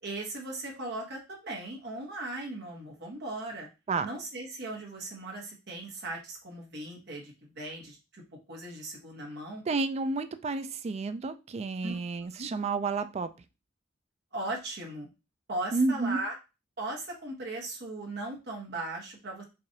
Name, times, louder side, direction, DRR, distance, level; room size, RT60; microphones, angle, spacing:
voice 1, 0.0-3.7 4.0-9.6 11.8-12.5 14.3-15.1 15.5-16.3 16.8-19.4, right 2 dB, 60° right, -1 dB, 1.3 m, -38 dB
voice 2, 9.7-13.3 15.7-16.2, right 3 dB, 35° right, 11 dB, 0.3 m, -30 dB
4.7 x 2.5 x 2.7 m, 0.28 s
head